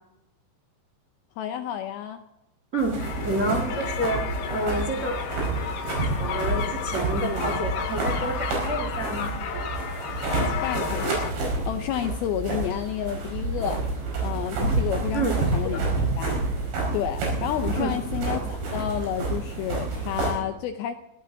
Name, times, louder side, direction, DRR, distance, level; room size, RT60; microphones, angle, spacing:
voice 1, 1.4-2.2 10.4-11.3 11.7-13.8 14.2-15.9 16.2-16.4 16.9-20.9, left 10 dB, 85° left, 7 dB, 2.1 m, -30 dB
voice 2, 2.7-5.2 6.2-9.3 15.1-15.4 15.7-15.8 17.8-17.9, right 1 dB, 40° right, 1 dB, 1.1 m, -29 dB
sound 1, 2.8-20.3, right 3 dB, 85° right, 7.5 m, -29 dB
sound 2, 3.0-11.3, left 8 dB, 65° left, 3.3 m, -33 dB
21.5 x 15.5 x 3.9 m, 0.89 s
omnidirectional pair, 5.2 m